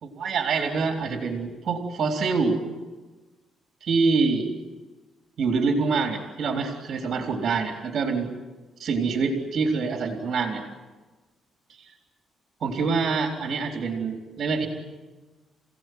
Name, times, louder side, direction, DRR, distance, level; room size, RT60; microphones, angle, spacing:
voice 1, 0.0-2.6 3.8-4.5 5.4-8.3 8.8-10.6 12.6-14.7, right 4 dB, 50° right, 2 dB, 3.7 m, -25 dB
29.0 x 17.5 x 9.5 m, 1.2 s
cardioid pair, 125°, 0 cm